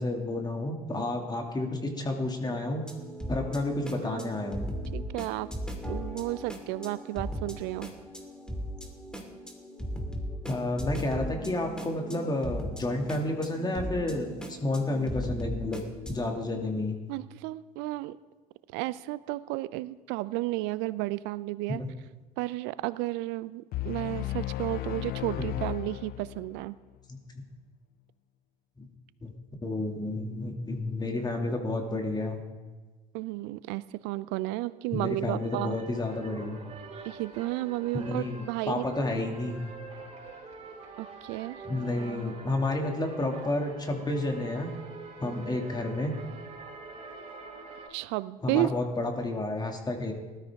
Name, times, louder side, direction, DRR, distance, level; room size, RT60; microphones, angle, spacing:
voice 1, 0.0-2.8 3.3-4.7 10.5-15.8 16.1-17.0 21.7-21.9 25.4-25.5 28.8-28.9 29.2-29.3 29.6-32.4 34.9-36.6 37.9-39.6 41.6-44.7 45.2-46.1 48.4-50.1, left 2 dB, 20° left, 2 dB, 2.5 m, -31 dB
sound 1, 2.8-16.1, equal, 5° left, 2.5 m, -38 dB
voice 2, 4.9-5.5 5.9-7.9 17.1-18.2 18.7-21.8 22.4-26.8 33.1-35.8 37.0-38.8 41.0-41.6 47.9-48.7, right 18 dB, 60° right, 18 dB, 0.6 m, -32 dB
sound 2, 23.7-26.7, left 15 dB, 50° left, 0.5 m, -34 dB
sound 3, 35.1-47.9, right 4 dB, 35° right, 4.9 m, -45 dB
19.0 x 12.5 x 3.6 m, 1.3 s
hypercardioid pair, 70°, 20 cm